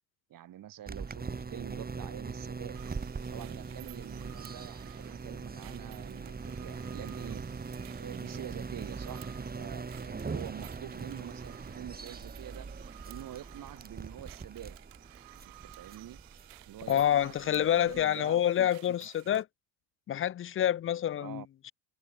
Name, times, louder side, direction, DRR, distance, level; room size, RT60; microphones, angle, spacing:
voice 1, 0.3-2.8 3.3-7.5 8.0-14.8 15.3-16.2 16.6-19.0 19.2-19.4 21.2-21.5, right 12 dB, 45° right, 2.5 m, -46 dB
sound 1, 0.9-18.1, right 4 dB, 20° right, 4.7 m, -41 dB
sound 2, 2.7-19.4, right 26 dB, 85° right, 4.0 m, -55 dB
voice 2, 16.9-19.5 20.1-21.7, left 10 dB, 30° left, 0.5 m, -28 dB
supercardioid pair, 110°, 46 cm